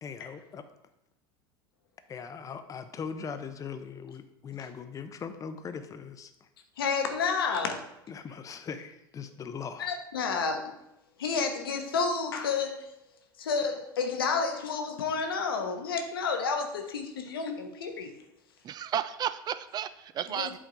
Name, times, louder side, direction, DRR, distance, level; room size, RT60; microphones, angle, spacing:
voice 1, 0.0-0.6 2.1-6.5 8.1-9.9, left 6 dB, 30° left, 9 dB, 0.7 m, -40 dB
voice 2, 6.8-7.9 9.8-10.7 11.2-12.9 13.4-18.1 20.4-20.5, left 5 dB, 80° left, 5 dB, 0.9 m, -30 dB
voice 3, 18.6-20.6, right 10 dB, 35° right, 13 dB, 0.4 m, -33 dB
7.9 x 3.6 x 3.8 m, 0.88 s
hypercardioid pair, 85°, 12 cm